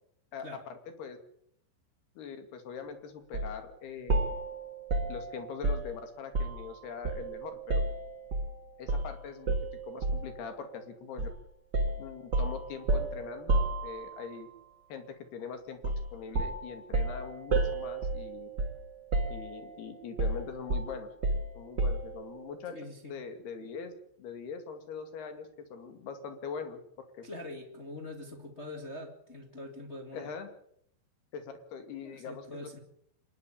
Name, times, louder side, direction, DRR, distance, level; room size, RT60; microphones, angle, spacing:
voice 1, 0.3-1.2 2.2-4.3 5.1-7.8 8.8-9.5 9.8-11.3 12.0-14.5 14.9-15.8 16.1-18.5 19.3-21.1 21.5-22.8 23.0-23.9 24.2-26.8 27.2-27.3 30.1-30.5 31.3-32.8, left 6 dB, 60° left, 7 dB, 4.1 m, -42 dB
sound 1, 3.3-3.5 4.1-6.7 7.0-8.5 8.9-9.1 9.5-10.4 11.2-11.4 11.7-14.3 15.8-16.1 16.3-18.8 19.1-19.7 20.2-22.2, right 2 dB, 35° right, 1.7 m, -31 dB
voice 2, 22.7-23.2 27.2-30.3 32.0-32.8, left 1 dB, 40° left, 2 dB, 0.9 m, -44 dB
27.0 x 11.0 x 8.6 m, 0.69 s
omnidirectional pair, 5.3 m